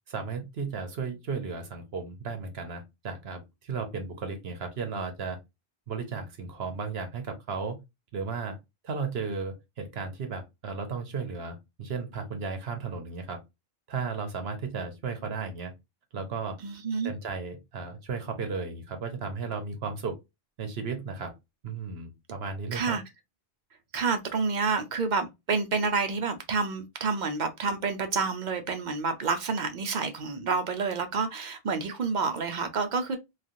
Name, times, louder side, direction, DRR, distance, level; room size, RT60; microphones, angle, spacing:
voice 1, 0.1-5.4 5.9-7.8 8.1-8.6 8.8-13.4 13.9-15.7 16.1-16.6 17.0-20.1 20.6-21.3 21.6-23.0, right 5 dB, 70° right, 1.0 m, -34 dB
voice 2, 16.6-17.1 22.7-23.0 23.9-33.2, right 4 dB, 55° right, 0.6 m, -29 dB
3.2 x 2.3 x 2.5 m
omnidirectional pair, 1.1 m